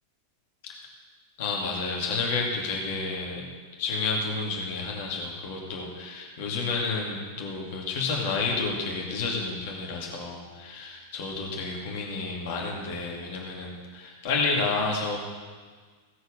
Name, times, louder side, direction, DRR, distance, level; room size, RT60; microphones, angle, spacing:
voice 1, 1.4-3.4 3.8-15.2, left 4 dB, 50° left, -1 dB, 2.5 m, -30 dB
17.0 x 8.0 x 5.3 m, 1.5 s
figure-of-eight pair, 90°, 0 cm